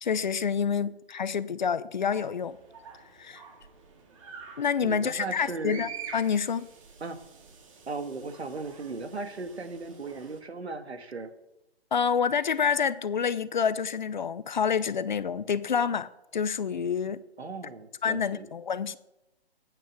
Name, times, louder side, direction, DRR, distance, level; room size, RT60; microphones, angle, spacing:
voice 1, 0.0-2.6 3.2-3.4 4.6-6.7 11.9-17.2 18.0-19.0, left 7 dB, 45° left, 0.7 m, -28 dB
sound 1, 2.0-10.4, right 6 dB, 30° right, 2.2 m, -47 dB
voice 2, 4.8-5.9 7.0-7.2 7.9-11.3 17.4-18.5, right 3 dB, 75° right, 1.9 m, -37 dB
18.5 x 9.1 x 6.2 m
figure-of-eight pair, 150°, 33 cm